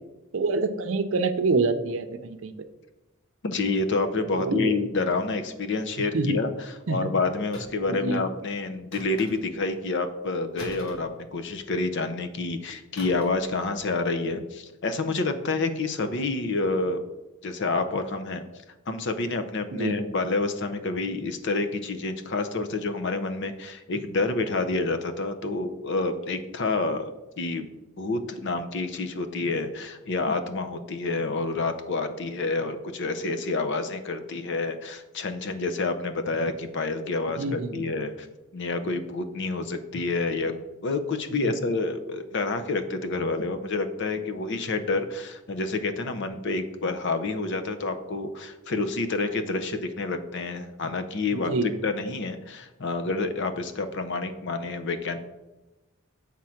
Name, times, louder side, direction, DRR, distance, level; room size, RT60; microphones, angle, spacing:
voice 1, 0.3-2.5 4.3-4.7 6.0-6.4 6.9-7.1 7.9-8.2 19.7-20.0 37.4-37.8 41.3-41.5 51.3-51.7, right 3 dB, 70° right, 10 dB, 0.6 m, -27 dB
voice 2, 3.4-6.5 6.9-17.0 17.4-18.4 18.9-27.7 28.0-38.3 38.5-40.5 40.8-55.2, left 3 dB, 60° left, 9 dB, 0.6 m, -28 dB
sound 1, 7.5-8.0 8.9-9.7 10.6-11.7 13.0-13.5 13.7-14.0, left 1 dB, 75° left, 1.4 m, -44 dB
7.5 x 3.7 x 5.7 m, 1.1 s
head